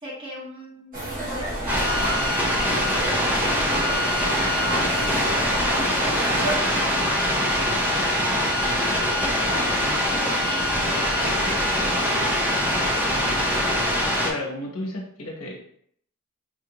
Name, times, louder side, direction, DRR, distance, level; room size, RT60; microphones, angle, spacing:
voice 1, 0.0-2.2 2.4-7.2 7.8-9.7 10.2-13.7, equal, 25° right, -5 dB, 1.3 m, -38 dB
sound 1, 0.9-6.6, right 1 dB, 40° right, 1.5 m, -30 dB
sound 2, 1.7-14.3, equal, 10° right, 0.6 m, -23 dB
sound 3, 3.6-8.9, right 1 dB, 75° right, 1.2 m, -39 dB
voice 2, 14.2-15.6, left 1 dB, 70° left, -1 dB, 0.9 m, -32 dB
4.6 x 2.5 x 2.9 m, 0.66 s
head